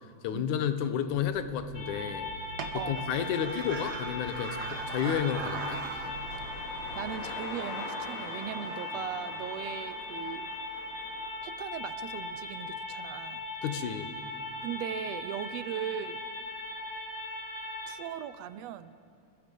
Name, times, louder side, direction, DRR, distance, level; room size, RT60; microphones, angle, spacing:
voice 1, 0.2-2.3 2.7-5.8 13.6-14.1, left 8 dB, 85° left, 10 dB, 2.5 m, -31 dB
sound 1, 1.1-7.3, right 5 dB, 55° right, 1.2 m, -41 dB
sound 2, 1.7-17.9, left 2 dB, 35° left, 4.2 m, -39 dB
voice 2, 2.7-3.1 6.9-10.5 11.4-13.4 14.6-16.2 17.9-19.0, right 10 dB, 75° right, 14 dB, 1.7 m, -38 dB
sound 3, 6.0-11.3, left 3 dB, 65° left, 3.3 m, -43 dB
29.5 x 20.0 x 5.4 m, 2.3 s
omnidirectional pair, 3.4 m